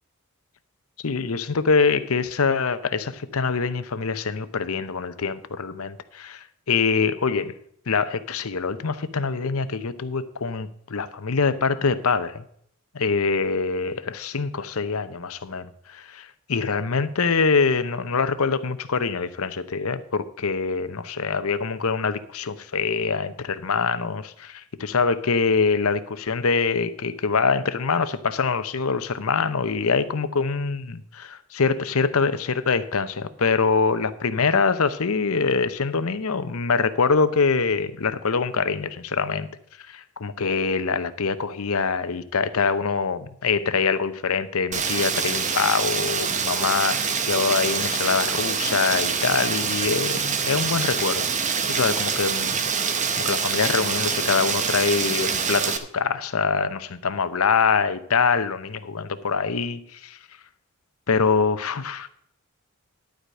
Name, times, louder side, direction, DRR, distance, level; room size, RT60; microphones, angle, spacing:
voice 1, 1.0-7.5 7.9-12.4 12.9-39.5 39.9-51.3 51.7-52.6 53.2-60.2 61.1-62.1, left 5 dB, 70° left, 12 dB, 0.7 m, -24 dB
Rain, 44.7-55.8, right 6 dB, 35° right, 0.8 m, -25 dB
11.5 x 4.9 x 7.7 m, 0.68 s
head